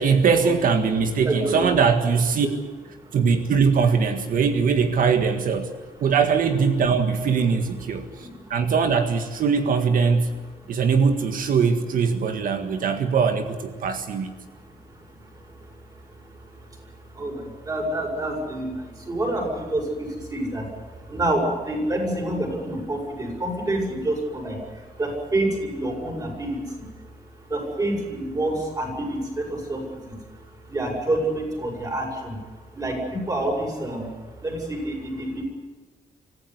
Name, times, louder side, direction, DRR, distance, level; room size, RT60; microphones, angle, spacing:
voice 1, 0.0-2.5 3.1-5.7 6.0-10.3 10.7-14.3, right 5 dB, 65° right, 7 dB, 1.8 m, -21 dB
voice 2, 1.1-1.7 3.0-3.1 7.9-8.5 10.6-10.8 14.4-35.4, right 1 dB, 25° right, 1 dB, 7.2 m, -29 dB
26.0 x 15.5 x 9.7 m, 1.4 s
wide cardioid pair, 170°, 15 cm